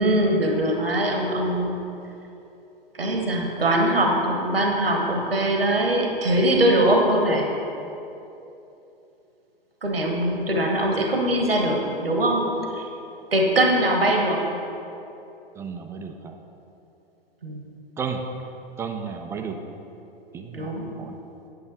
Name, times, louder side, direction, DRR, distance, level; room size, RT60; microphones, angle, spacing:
voice 1, 0.0-1.8 3.0-7.5 9.8-12.4 12.7-12.8 13.3-14.5 17.4-17.6 20.5-20.8, right 1 dB, 80° right, 1 dB, 1.1 m, -22 dB
voice 2, 15.6-16.4 18.0-18.3 18.8-19.6 20.3-21.2, right 6 dB, 10° right, 4 dB, 0.3 m, -33 dB
8.7 x 8.5 x 4.1 m, 2.9 s
figure-of-eight pair, 95°, 29 cm